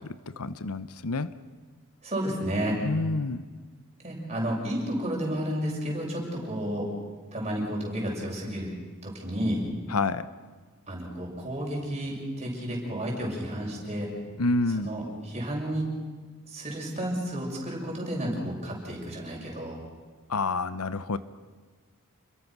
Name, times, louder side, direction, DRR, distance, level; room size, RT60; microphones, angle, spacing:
voice 1, 0.0-1.3 2.8-3.4 9.9-10.3 14.4-14.9 20.3-21.2, left 3 dB, 80° left, 14 dB, 0.9 m, -28 dB
voice 2, 2.0-2.8 4.0-6.9 7.3-8.7 9.0-9.6 10.9-14.1 14.8-15.9 16.5-19.8, equal, 30° right, -2 dB, 6.9 m, -31 dB
29.0 x 22.5 x 6.2 m, 1.5 s
head